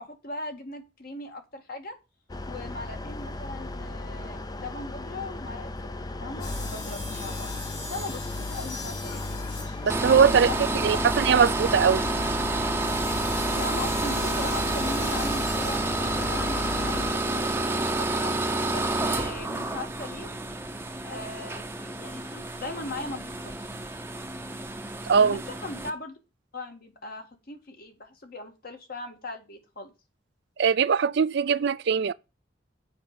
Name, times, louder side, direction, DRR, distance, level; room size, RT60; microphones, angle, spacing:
voice 1, 0.0-2.0 2.5-5.7 6.2-7.5 7.9-9.3 10.3-11.0 13.3-18.3 18.7-20.3 21.0-23.7 25.2-26.2 26.5-29.9, left 2 dB, 55° left, 1.7 m, -39 dB
sound 1, 2.3-17.1, left 2 dB, 20° left, 0.5 m, -35 dB
sound 2, 6.4-15.8, left 3 dB, 75° left, 4.4 m, -42 dB
voice 2, 9.8-10.5 10.8-12.0 25.1-25.4 30.6-32.1, right 6 dB, 65° right, 0.4 m, -21 dB
sound 3, 9.9-25.9, right 2 dB, 10° right, 0.7 m, -29 dB
7.2 x 5.2 x 5.8 m
head